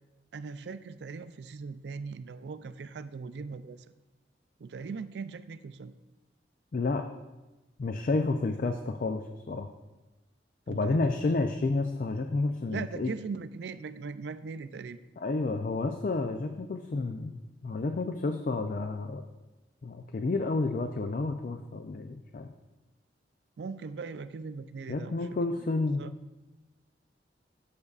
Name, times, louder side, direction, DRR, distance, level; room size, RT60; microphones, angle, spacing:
voice 1, 0.3-3.9 4.6-5.9 10.7-11.0 12.7-15.0 23.6-25.2 26.0-26.1, right 4 dB, 70° right, 12 dB, 0.4 m, -39 dB
voice 2, 6.7-7.0 7.8-9.7 10.7-13.1 15.2-19.2 19.8-22.5 24.9-26.1, left 3 dB, 50° left, 6 dB, 0.4 m, -30 dB
13.5 x 6.6 x 2.4 m, 1.1 s
head